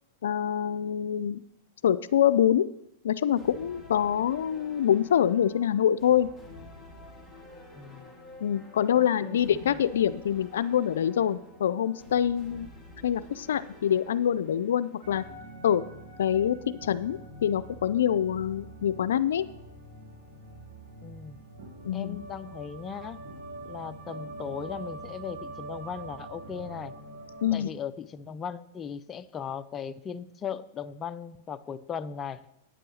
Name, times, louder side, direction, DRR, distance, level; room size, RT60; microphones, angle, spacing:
voice 1, 0.2-1.4 1.8-2.7 3.0-6.3 8.4-12.7 13.0-15.2 15.6-15.8 16.2-19.4 21.9-22.2 27.4-27.7, left 9 dB, 80° left, 15 dB, 0.4 m, -25 dB
sound 1, 3.4-15.3, left 2 dB, 5° left, 2.3 m, -50 dB
voice 2, 7.7-8.1 8.9-9.8 21.0-21.4 21.9-23.2 23.6-26.9 27.5-32.4, left 7 dB, 25° left, 12 dB, 0.5 m, -38 dB
sound 2, 15.0-27.6, right 1 dB, 70° right, 2.7 m, -44 dB
9.1 x 7.7 x 6.3 m, 0.81 s
hypercardioid pair, 130°, 0 cm